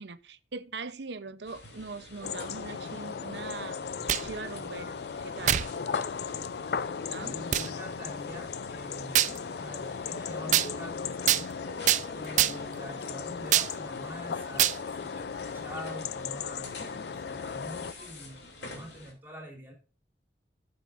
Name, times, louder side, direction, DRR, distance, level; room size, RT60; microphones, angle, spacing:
voice 1, 0.0-5.7 7.1-7.4, right 4 dB, 75° right, 0.7 m, -41 dB
sound 1, 1.4-19.1, left 2 dB, 80° left, 2.9 m, -48 dB
sound 2, 2.2-17.9, left 6 dB, 65° left, 0.4 m, -36 dB
sound 3, 3.9-4.4 5.5-5.7 6.4-6.5 7.5-7.7 9.2-9.4 10.5-10.7 11.3-11.5 11.9-12.0 12.4-12.7 13.5-13.7 14.6-14.8, right 12 dB, 45° right, 0.4 m, -24 dB
voice 2, 7.2-11.5 12.1-16.7 17.0-19.7, equal, 10° right, 3.9 m, -45 dB
13.0 x 8.0 x 2.6 m
head